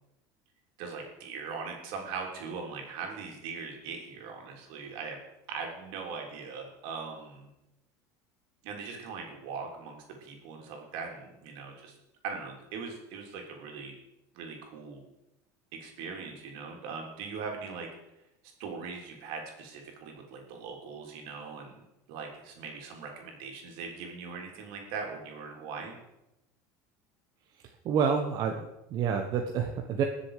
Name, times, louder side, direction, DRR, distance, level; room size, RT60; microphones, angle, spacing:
voice 1, 0.8-5.2 5.5-7.5 8.6-12.0 12.2-13.9 14.3-15.0 15.7-17.9 18.6-26.0, right 5 dB, 70° right, 1 dB, 3.4 m, -40 dB
voice 2, 27.5-30.0, right 6 dB, 45° right, 3 dB, 1.2 m, -29 dB
21.0 x 7.2 x 5.0 m, 0.92 s
supercardioid pair, 125°, 9 cm